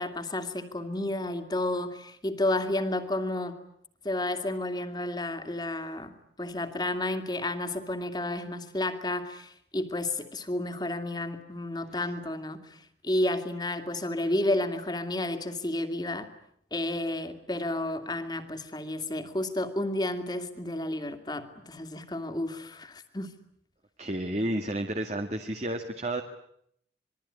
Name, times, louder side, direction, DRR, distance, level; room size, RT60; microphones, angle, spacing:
voice 1, 0.0-3.6 4.0-16.3 16.7-23.3, left 1 dB, 25° left, 7 dB, 2.5 m, -31 dB
voice 2, 24.0-26.2, right 1 dB, 40° right, 5 dB, 1.7 m, -31 dB
27.0 x 22.5 x 9.8 m, 0.71 s
head